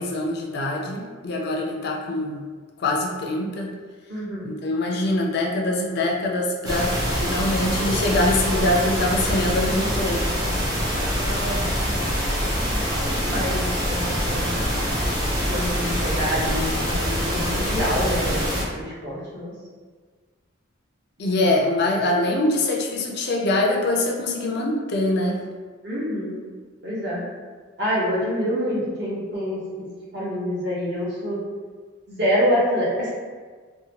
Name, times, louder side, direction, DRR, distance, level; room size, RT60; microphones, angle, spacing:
voice 1, 0.0-2.4 2.8-3.7 4.4-10.3 21.2-25.4, left 1 dB, 50° left, -1 dB, 0.4 m, -24 dB
voice 2, 4.1-4.5 9.7-9.8 11.1-12.0 12.7-14.6 15.5-19.5 25.8-26.3 26.8-27.2 27.8-29.6 30.1-31.4 32.1-33.1, equal, 50° right, -7 dB, 0.9 m, -27 dB
sound 1, 6.6-18.6, equal, 15° right, 0.5 m, -24 dB
2.8 x 2.1 x 2.8 m, 1.5 s
head